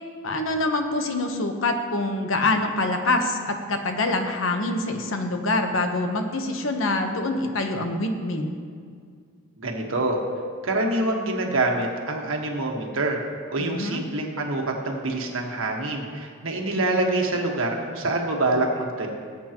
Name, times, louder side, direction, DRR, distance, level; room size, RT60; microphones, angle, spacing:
voice 1, 0.2-8.5 13.6-14.0, left 2 dB, 70° left, 5 dB, 1.0 m, -25 dB
voice 2, 9.6-10.2 10.6-13.2 13.5-19.1, right 2 dB, 75° right, 1 dB, 1.5 m, -26 dB
19.0 x 8.3 x 3.0 m, 2.2 s
head